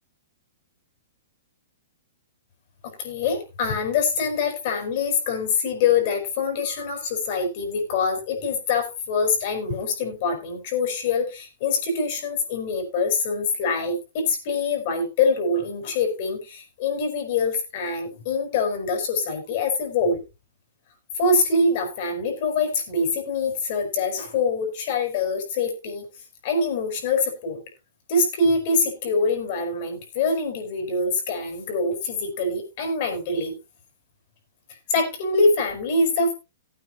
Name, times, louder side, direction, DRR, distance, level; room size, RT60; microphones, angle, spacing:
voice 1, 3.0-20.2 21.2-26.1 26.4-27.6 28.1-33.6 34.9-36.3, left 3 dB, 40° left, 4 dB, 5.0 m, -24 dB
18.5 x 9.2 x 2.8 m, 0.27 s
hypercardioid pair, 165°, 0 cm